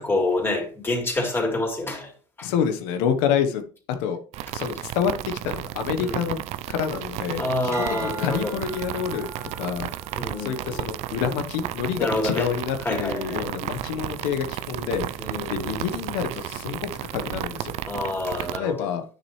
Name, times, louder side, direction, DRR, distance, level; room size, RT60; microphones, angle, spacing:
voice 1, 0.0-2.1 2.4-2.5 6.0-6.2 7.4-8.6 10.2-10.8 12.0-12.5 12.8-13.4 15.2-16.0 17.9-18.9, left 2 dB, 20° left, 3.7 m, -27 dB
voice 2, 2.4-3.6 4.0-4.2 4.5-6.4 6.7-9.3 9.6-9.9 10.4-17.7 18.4-19.0, left 7 dB, 80° left, 1.2 m, -28 dB
sound 1, 4.3-18.6, right 14 dB, 60° right, 0.5 m, -33 dB
sound 2, 7.7-12.2 12.7-13.1, right 3 dB, 25° right, 1.2 m, -41 dB
9.8 x 6.6 x 3.2 m
supercardioid pair, 95°, 12 cm